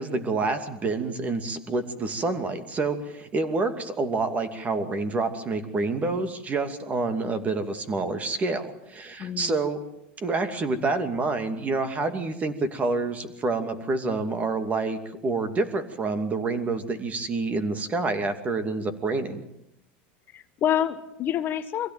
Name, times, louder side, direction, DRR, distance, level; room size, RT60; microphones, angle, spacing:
voice 1, 0.0-9.8 10.2-19.4, right 3 dB, 25° right, 9 dB, 2.6 m, -28 dB
voice 2, 9.2-9.5 20.3-21.9, left 10 dB, 35° left, 10 dB, 1.2 m, -27 dB
24.0 x 16.0 x 9.2 m, 0.81 s
supercardioid pair, 125°, 6 cm